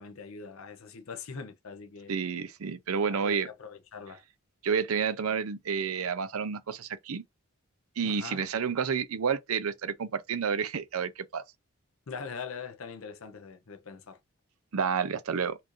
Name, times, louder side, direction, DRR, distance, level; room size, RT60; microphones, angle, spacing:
voice 1, 0.0-2.1 3.1-4.2 8.0-8.4 12.1-14.2, left 5 dB, 80° left, 0.7 m, -42 dB
voice 2, 2.1-3.5 4.6-7.2 8.0-11.4 14.7-15.6, right 6 dB, 85° right, 0.5 m, -30 dB
4.2 x 2.5 x 3.0 m
head